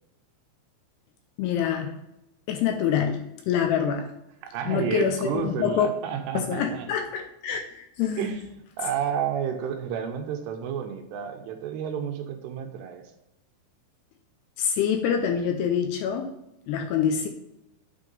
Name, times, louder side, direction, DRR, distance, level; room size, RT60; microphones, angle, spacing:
voice 1, 1.4-1.9 2.5-4.1 4.7-5.9 6.3-8.3 14.6-16.3 16.7-17.3, left 8 dB, 80° left, 4 dB, 2.5 m, -26 dB
voice 2, 4.4-6.9 8.2-8.4 8.8-13.0, right 8 dB, 80° right, 4 dB, 2.7 m, -30 dB
9.1 x 3.7 x 5.2 m, 0.90 s
omnidirectional pair, 5.2 m